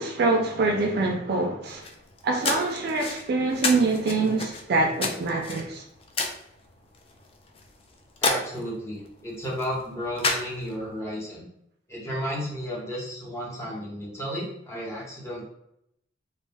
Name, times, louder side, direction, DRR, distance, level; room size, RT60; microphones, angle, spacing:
voice 1, 0.0-1.8 2.2-5.8, right 3 dB, 60° right, 0.3 m, -25 dB
sound 1, 1.7-11.0, left 3 dB, 30° left, 0.3 m, -33 dB
voice 2, 8.2-11.5 11.9-15.4, equal, 15° left, 0.9 m, -33 dB
2.4 x 2.2 x 3.2 m
head